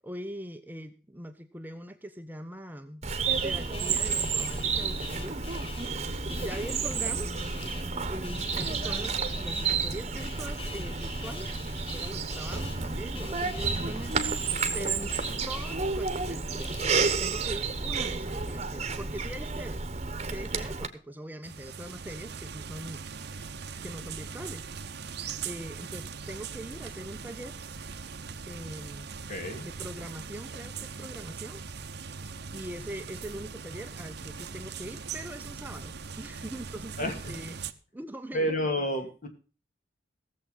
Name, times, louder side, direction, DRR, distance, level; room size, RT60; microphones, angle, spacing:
voice 1, 0.0-3.0 3.4-5.4 6.4-7.4 8.1-11.5 11.9-15.2 15.4-16.7 17.2-19.8 20.3-23.1 23.8-24.7 25.4-27.6 28.5-29.1 29.6-31.6 32.5-37.6 37.9-38.6, right 1 dB, 10° right, 8 dB, 0.8 m, -42 dB
Bird vocalization bird call bird song, 3.0-20.9, right 4 dB, 35° right, 1.2 m, -31 dB
sound 1, 3.3-17.0, left 3 dB, 30° left, 1.5 m, -44 dB
sound 2, 21.4-37.7, right 5 dB, 60° right, 0.9 m, -40 dB
voice 2, 29.3-29.7 37.0-37.1 38.3-39.3, equal, 45° left, 5 dB, 2.5 m, -30 dB
17.0 x 7.4 x 5.5 m, 0.36 s
head